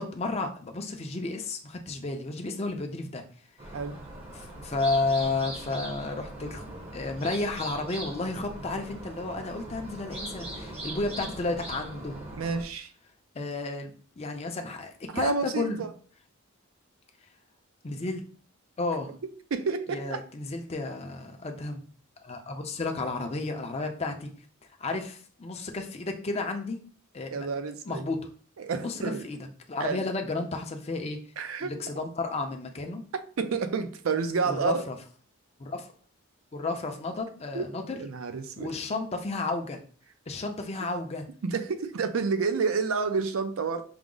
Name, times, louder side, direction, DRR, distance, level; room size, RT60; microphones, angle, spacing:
voice 1, 0.0-3.2 3.7-3.8 4.3-6.6 6.9-12.2 13.3-15.9 17.8-18.2 18.8-19.1 19.9-21.9 22.2-24.3 24.8-26.8 27.1-27.5 27.9-28.3 28.8-29.0 29.2-31.2 31.6-33.0 34.5-35.0 35.6-35.9 36.5-38.0 38.6-39.8 40.3-41.2, left 3 dB, 30° left, 0.5 m, -32 dB
sound 1, 3.6-12.6, right 1 dB, 25° right, 0.7 m, -40 dB
voice 2, 12.4-12.9 15.1-15.9 19.5-20.2 27.3-28.0 28.6-29.3 29.8-30.1 31.4-31.7 33.4-34.8 37.5-37.6 37.9-38.7 41.4-43.8, right 5 dB, 70° right, 0.5 m, -29 dB
4.7 x 2.0 x 3.7 m
head